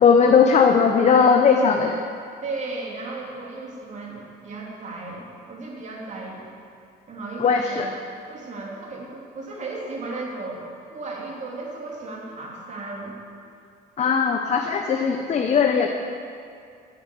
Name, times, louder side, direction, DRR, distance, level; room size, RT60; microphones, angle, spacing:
voice 1, 0.0-2.0 7.4-7.9 14.0-15.9, left 6 dB, 40° left, 4 dB, 0.8 m, -18 dB
voice 2, 2.4-6.5 7.1-7.9 8.3-13.2, right 3 dB, 45° right, -2 dB, 3.0 m, -35 dB
10.0 x 9.6 x 6.9 m, 2.4 s
cardioid pair, 110°, 17 cm